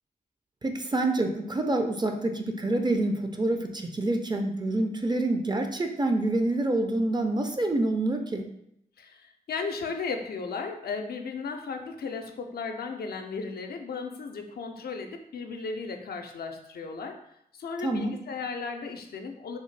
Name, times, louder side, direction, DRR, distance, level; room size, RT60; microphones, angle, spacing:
voice 1, 0.6-8.5 17.8-18.2, right 2 dB, 25° right, 5 dB, 0.5 m, -27 dB
voice 2, 9.0-17.2 17.5-19.6, left 4 dB, 65° left, 4 dB, 0.4 m, -35 dB
3.4 x 2.0 x 3.2 m, 0.75 s
cardioid pair, 45°, 17 cm